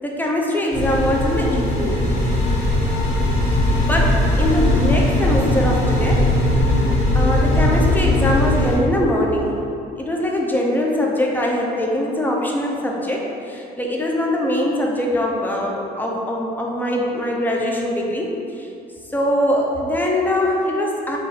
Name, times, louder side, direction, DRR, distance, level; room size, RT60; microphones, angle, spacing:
voice 1, 0.0-2.0 3.8-6.3 7.1-9.5 10.0-18.7 19.1-21.2, left 1 dB, 10° left, -2 dB, 0.6 m, -22 dB
sound 1, 0.7-8.8, left 1 dB, 40° left, 1.5 m, -19 dB
4.7 x 2.6 x 4.2 m, 2.6 s
cardioid pair, 110°, 17 cm